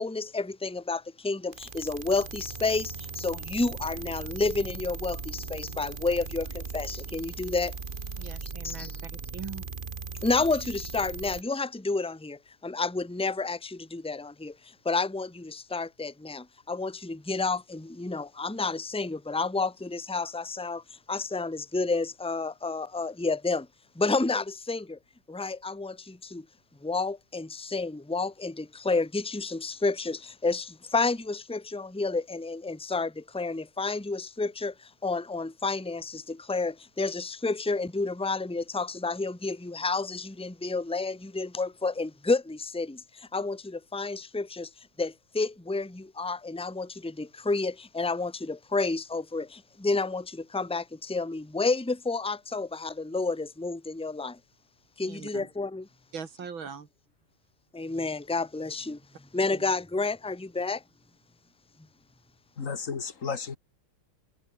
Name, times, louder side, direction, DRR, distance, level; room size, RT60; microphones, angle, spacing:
voice 1, 0.0-7.8 8.6-9.0 10.2-23.7 23.9-25.0 25.3-26.5 26.8-44.7 45.0-54.4 55.0-55.9 57.7-59.0 59.3-60.8, left 3 dB, 5° left, 1.5 m, -30 dB
sound 1, 1.5-11.4, right 4 dB, 30° right, 1.4 m, -39 dB
voice 2, 8.2-9.7 55.0-55.5 56.1-56.9 59.5-59.6, right 6 dB, 80° right, 3.4 m, -41 dB
voice 3, 62.6-63.6, left 5 dB, 40° left, 2.1 m, -33 dB
omnidirectional pair, 2.2 m